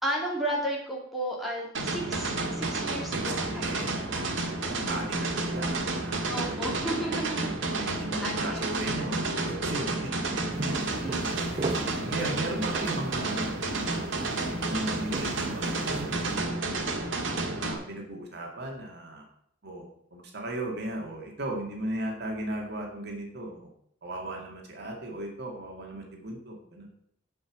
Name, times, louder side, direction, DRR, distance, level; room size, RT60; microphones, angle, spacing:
voice 1, 0.0-4.8 6.3-7.5 8.2-8.7 11.0-11.6, right 1 dB, ahead, -3 dB, 2.8 m, -34 dB
sound 1, 1.7-17.7, right 2 dB, 85° right, 1.7 m, -31 dB
voice 2, 3.5-4.0 4.5-6.2 6.4-6.6 7.8-10.1 10.9-11.0 12.0-13.5 14.5-16.2 17.6-19.2 19.6-19.9 20.1-23.7 24.0-26.9, right 1 dB, 60° right, 1 dB, 2.1 m, -36 dB
sound 2, 10.5-16.4, right 2 dB, 30° right, 0.7 m, -39 dB
9.4 x 5.6 x 7.3 m, 0.73 s
head